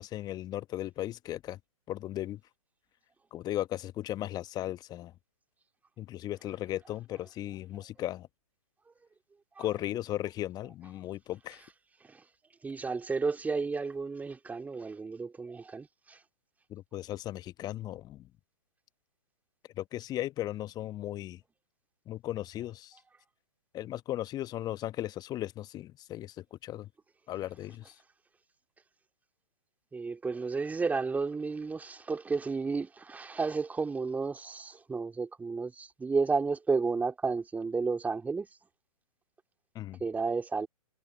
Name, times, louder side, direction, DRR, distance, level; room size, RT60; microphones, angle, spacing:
voice 1, 0.0-1.6 1.9-2.4 3.3-5.1 6.0-8.3 9.6-11.6 16.7-18.3 19.8-21.4 22.1-23.0 23.7-26.9 27.3-27.9 39.7-40.0, left 13 dB, 20° left, 1.2 m, -36 dB
voice 2, 12.6-16.2 29.9-38.5 40.0-40.7, right 4 dB, 10° right, 2.5 m, -32 dB
figure-of-eight pair, 120°, 19 cm